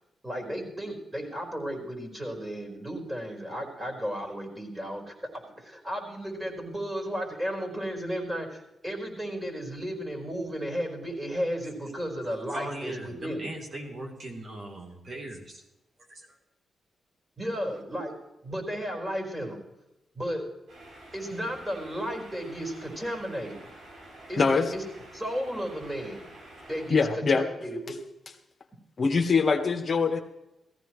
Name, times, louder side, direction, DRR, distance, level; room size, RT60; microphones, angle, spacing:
voice 1, 0.2-13.5 17.4-18.1 18.4-19.6 20.1-20.4 21.1-23.7 24.3-24.8 25.1-26.3 26.7-27.9, equal, 15° right, 0 dB, 4.7 m, -34 dB
voice 2, 12.5-15.6 16.1-16.3, right 1 dB, 50° right, 1 dB, 3.3 m, -39 dB
sound 1, 20.7-26.9, right 1 dB, 80° right, 6.7 m, -49 dB
voice 3, 24.4-24.7 26.9-27.4 29.0-30.2, left 5 dB, 45° left, 6 dB, 1.2 m, -23 dB
18.0 x 15.0 x 3.2 m, 0.94 s
cardioid pair, 75°, 0 cm